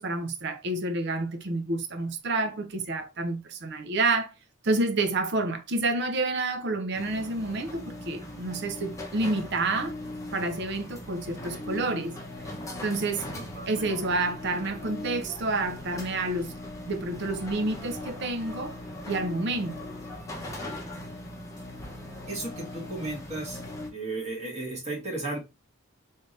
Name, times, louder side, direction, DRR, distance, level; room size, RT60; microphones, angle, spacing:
voice 1, 0.0-4.3 4.6-9.9 10.3-12.2 12.8-13.3 13.7-16.5 16.9-18.8 19.1-19.8, right 2 dB, 55° right, 0.6 m, -29 dB
sound 1, 6.9-23.9, left 1 dB, 15° left, 0.8 m, -40 dB
voice 2, 13.3-13.9 22.3-23.6 23.9-25.4, right 2 dB, 35° right, 1.5 m, -34 dB
3.3 x 2.7 x 3.2 m
head